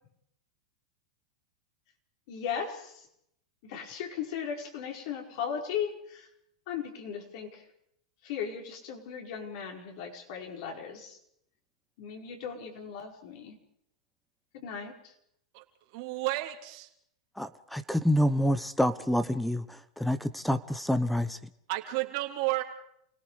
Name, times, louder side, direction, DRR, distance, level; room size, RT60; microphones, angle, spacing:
voice 1, 2.3-3.1 3.6-6.3 6.7-7.6 8.2-11.2 12.0-13.6 14.5-15.1, left 7 dB, 60° left, 2 dB, 5.3 m, -37 dB
voice 2, 15.9-16.9 21.7-22.6, right 18 dB, 55° right, 4 dB, 3.2 m, -31 dB
voice 3, 17.4-19.6 20.0-21.4, equal, ahead, 13 dB, 1.1 m, -27 dB
29.0 x 18.5 x 5.1 m, 0.72 s
hypercardioid pair, 110°, 3 cm